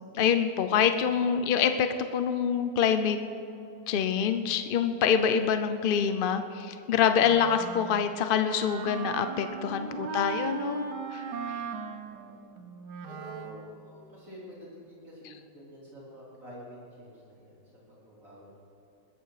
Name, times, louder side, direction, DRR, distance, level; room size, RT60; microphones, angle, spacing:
voice 1, 0.1-3.2 3.9-10.8 11.1-11.2, left 7 dB, 65° left, 9 dB, 0.5 m, -26 dB
Wind instrument woodwind instrument, 7.2-13.8, right 6 dB, 90° right, 1.5 m, -38 dB
voice 2, 9.6-10.4 11.3-11.7 12.2-12.3 13.1-17.6 17.9-18.7, right 1 dB, 50° right, -7 dB, 4.1 m, -48 dB
21.0 x 13.5 x 4.9 m, 2.7 s
omnidirectional pair, 1.8 m